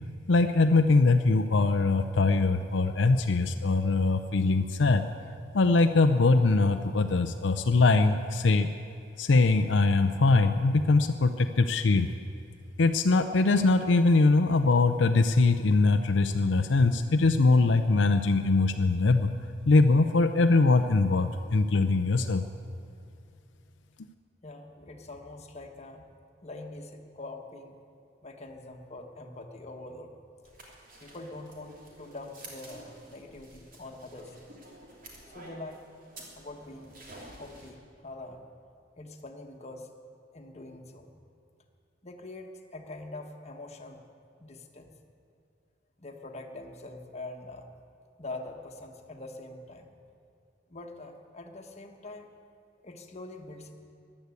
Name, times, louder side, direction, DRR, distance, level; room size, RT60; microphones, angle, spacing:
voice 1, 0.3-5.1 5.5-8.7 9.2-12.1 12.8-19.3 19.7-22.4, left 3 dB, 75° left, 7 dB, 0.6 m, -22 dB
voice 2, 24.4-26.1 26.4-27.7 28.2-30.1 31.0-34.4 35.3-35.9 36.4-37.0 37.4-38.4 39.0-39.9 40.3-41.1 42.0-44.0 44.4-45.0 46.0-47.7 48.2-49.9 50.7-52.3 52.8-53.7, left 2 dB, 35° left, 3 dB, 1.4 m, -44 dB
sound 1, 30.4-37.7, right 1 dB, 50° right, 3.0 m, -50 dB
15.0 x 11.0 x 8.4 m, 2.6 s
head